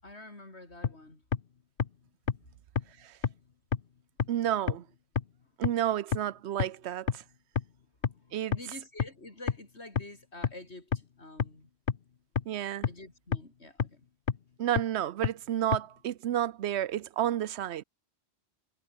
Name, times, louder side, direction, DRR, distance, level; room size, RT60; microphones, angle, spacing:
voice 1, 0.0-1.3 8.1-11.7 12.9-14.1, left 2 dB, 75° left, 5.3 m, -48 dB
sound 1, 0.8-0.9 1.3-1.4 1.8-1.9 2.3-2.4 2.8-2.9 3.2-3.3 3.7-3.8 4.2-4.3 4.7-4.8 5.2-5.3 5.6-5.7 6.1-6.2 6.6-6.7 7.1-7.2 7.6-7.7 8.0-8.1 8.5-8.6 9.0-9.1 9.5-9.6 10.0-10.1 10.4-10.5 10.9-11.0 11.4-11.5 11.9-12.0 12.4-12.5 12.8-12.9 13.3-13.4 13.8-13.9 14.3-14.4 14.8-14.9 15.2-15.3 15.7-15.8, left 7 dB, 55° left, 1.1 m, -26 dB
voice 2, 4.3-4.8 5.6-7.2 8.3-8.5 12.5-12.9 14.6-17.8, right 11 dB, 80° right, 0.9 m, -31 dB
omnidirectional pair, 1.1 m